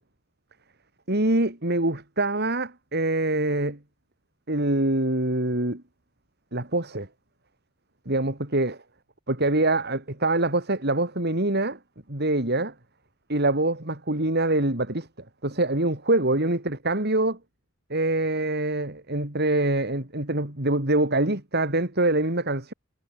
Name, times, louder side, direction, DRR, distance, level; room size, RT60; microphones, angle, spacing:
voice 1, 1.1-3.8 4.5-5.8 6.5-7.1 8.1-8.8 9.3-11.8 12.1-12.7 13.3-15.1 15.4-17.4 17.9-22.7, right 2 dB, 55° right, 4.5 m, -24 dB
head